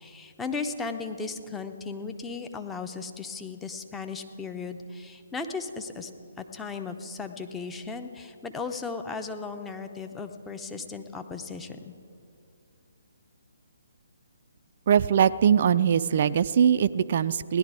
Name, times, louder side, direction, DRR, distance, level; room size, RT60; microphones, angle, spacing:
voice 1, 0.0-6.1 6.4-11.9, left 4 dB, 10° left, 6 dB, 0.7 m, -36 dB
voice 2, 14.9-17.6, right 8 dB, 45° right, 13 dB, 0.3 m, -21 dB
17.5 x 11.0 x 4.8 m, 2.6 s
figure-of-eight pair, 135°, 0 cm